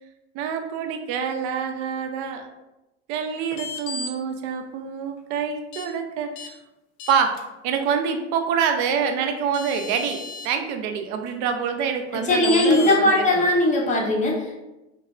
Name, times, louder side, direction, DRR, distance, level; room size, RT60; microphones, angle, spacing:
voice 1, 0.3-2.5 3.1-6.6 7.1-7.3 7.6-10.2 10.4-13.3, right 7 dB, 60° right, 5 dB, 0.5 m, -26 dB
sound 1, 3.5-4.1 5.7-5.9 6.4-6.5 7.0-7.4 9.1-9.2 9.5-10.5 12.4-13.0, left 4 dB, 75° left, 0.6 m, -34 dB
voice 2, 12.2-14.6, left 2 dB, 20° left, -2 dB, 0.7 m, -19 dB
3.2 x 2.0 x 2.4 m, 0.98 s
supercardioid pair, 100°, 34 cm